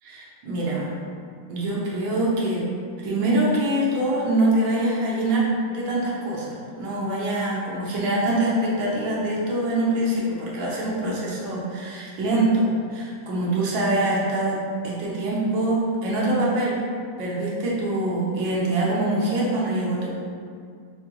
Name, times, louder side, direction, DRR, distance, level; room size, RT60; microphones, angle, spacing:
voice 1, 0.0-0.9 1.5-2.7 3.0-14.6 14.8-16.8 17.2-20.1, right 1 dB, 75° right, -6 dB, 1.5 m, -24 dB
4.7 x 2.2 x 2.9 m, 2.2 s
omnidirectional pair, 2.2 m